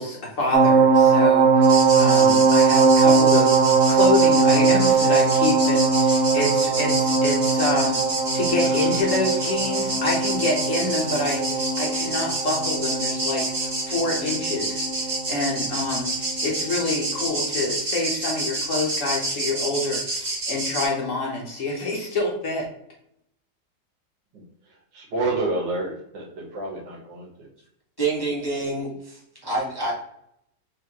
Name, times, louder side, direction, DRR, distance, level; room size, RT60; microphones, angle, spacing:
voice 1, 0.0-3.6 3.9-22.7, left 2 dB, 55° left, -1 dB, 1.0 m, -27 dB
sound 1, 0.5-16.1 16.4-16.6, right 4 dB, 65° right, 0.9 m, -20 dB
sound 2, 1.6-20.9, right 2 dB, 45° right, 1.9 m, -28 dB
voice 2, 24.9-27.5, right 2 dB, 80° right, -1 dB, 1.9 m, -29 dB
voice 3, 28.0-29.9, right 3 dB, 20° left, -6 dB, 0.8 m, -27 dB
4.0 x 3.6 x 2.8 m, 0.75 s
omnidirectional pair, 1.9 m